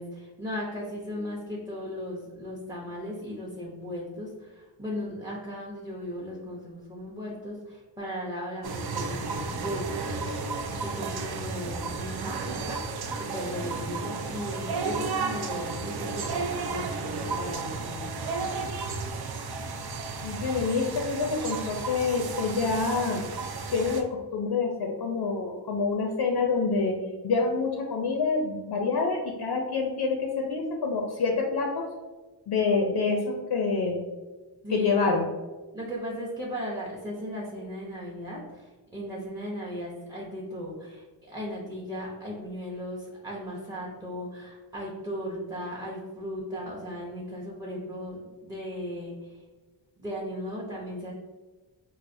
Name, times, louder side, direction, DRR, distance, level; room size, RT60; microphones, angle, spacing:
voice 1, 0.0-10.0 10.8-18.8 34.6-35.0 35.7-49.4 50.0-51.1, equal, 10° right, -6 dB, 0.6 m, -37 dB
sound 1, 8.6-24.0, right 4 dB, 55° right, 0.5 m, -33 dB
voice 2, 20.2-23.2 23.7-26.9 27.2-31.9 32.5-34.0 34.7-35.3, left 4 dB, 60° left, 1 dB, 0.5 m, -27 dB
4.7 x 2.4 x 2.6 m, 1.2 s
wide cardioid pair, 125°, 45 cm